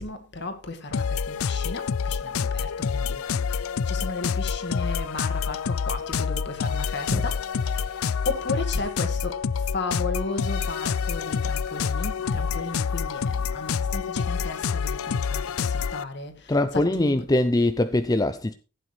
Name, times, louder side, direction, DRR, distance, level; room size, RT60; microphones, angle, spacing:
voice 1, 0.0-17.1, left 3 dB, 55° left, 2.0 m, -34 dB
sound 1, 0.9-16.0, left 6 dB, 80° left, 0.5 m, -27 dB
voice 2, 16.5-18.5, left 1 dB, 15° left, 0.5 m, -22 dB
15.0 x 9.0 x 3.2 m
head